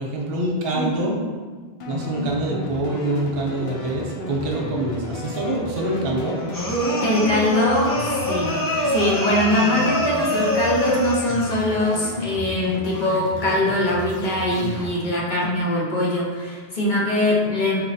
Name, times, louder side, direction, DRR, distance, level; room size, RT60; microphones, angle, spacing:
voice 1, 0.0-1.4 1.9-6.4, right 1 dB, 70° right, -1 dB, 1.0 m, -25 dB
sound 1, 1.8-14.9, left 1 dB, 80° left, 0.9 m, -33 dB
sound 2, 6.5-11.4, equal, 30° left, 0.4 m, -24 dB
voice 2, 7.0-7.9 8.3-8.5 8.9-17.8, left 1 dB, 50° left, -5 dB, 0.9 m, -22 dB
4.4 x 3.0 x 2.7 m, 1.4 s
omnidirectional pair, 1.0 m